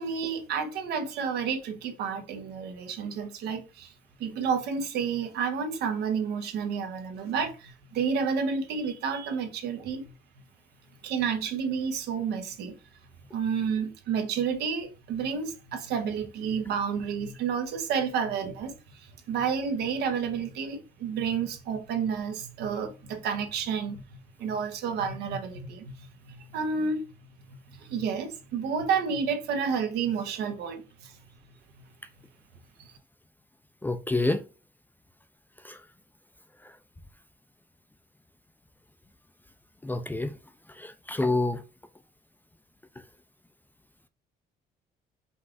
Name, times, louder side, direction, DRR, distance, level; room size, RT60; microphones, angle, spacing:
voice 1, 0.0-3.9 4.2-10.1 11.0-12.8 13.3-27.1 27.7-31.1 32.8-32.9, right 6 dB, 75° right, 1.0 m, -30 dB
voice 2, 33.8-34.4 35.6-35.8 39.8-40.3 40.7-41.6, left 2 dB, 10° left, 0.4 m, -28 dB
5.5 x 2.5 x 3.4 m
cardioid pair, 110°, 17 cm